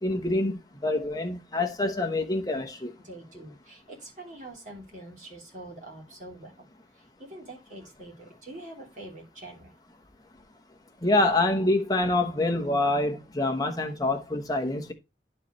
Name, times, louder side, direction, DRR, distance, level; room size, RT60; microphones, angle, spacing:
voice 1, 0.0-2.9 11.0-14.9, left 2 dB, 20° left, 1.0 m, -26 dB
voice 2, 3.0-6.7 6.9-9.8, right 1 dB, 45° right, 3.1 m, -45 dB
11.0 x 4.7 x 3.1 m
head